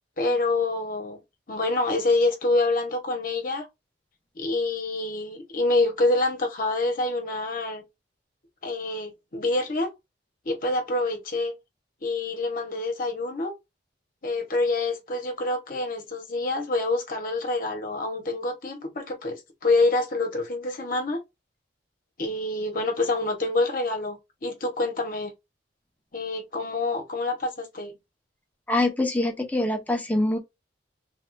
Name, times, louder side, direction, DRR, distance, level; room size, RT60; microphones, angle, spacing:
voice 1, 0.2-1.2 1.5-3.7 4.3-7.8 8.6-9.9 10.4-11.5 12.0-13.5 14.2-21.2 22.2-25.3 26.1-27.9, left 2 dB, 50° left, 1.0 m, -26 dB
voice 2, 28.7-30.4, left 2 dB, 10° left, 0.7 m, -24 dB
3.3 x 2.3 x 2.5 m
head